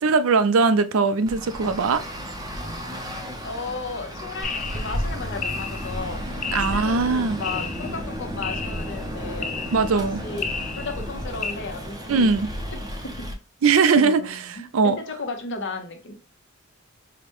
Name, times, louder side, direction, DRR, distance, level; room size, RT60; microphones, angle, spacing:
voice 1, 0.0-2.0 6.5-7.4 9.7-10.2 12.1-12.5 13.6-15.0, right 4 dB, 70° right, 0.4 m, -20 dB
Traffic noise roadway noise, 1.3-13.3, equal, 20° right, 0.6 m, -33 dB
voice 2, 3.3-6.2 6.6-9.5 9.9-10.5 10.7-12.3 12.8-13.3 14.0-16.2, left 3 dB, 60° left, 0.8 m, -34 dB
sound 1, 4.4-11.5, left 4 dB, 35° left, 0.5 m, -33 dB
4.9 x 2.2 x 2.9 m
head